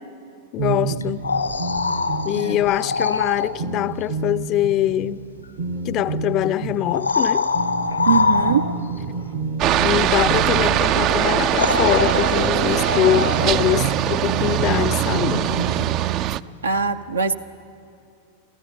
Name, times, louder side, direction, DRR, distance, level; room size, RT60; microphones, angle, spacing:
voice 1, 0.5-1.2 2.2-5.2 5.8-7.5 9.8-15.5, left 13 dB, 35° left, 0.5 m, -23 dB
sound 1, 0.6-16.0, right 4 dB, 55° right, 1.1 m, -30 dB
sound 2, 1.0-3.6 5.4-5.5 6.8-9.0 10.9-11.0 11.5-13.7 16.8-16.9, left 4 dB, 85° left, 1.2 m, -24 dB
voice 2, 8.1-8.7 16.6-17.3, right 5 dB, 75° right, 0.8 m, -21 dB
Aircraft, 9.6-16.4, right 12 dB, 40° right, 0.4 m, -21 dB
28.5 x 14.0 x 8.5 m
figure-of-eight pair, 90°, 0 cm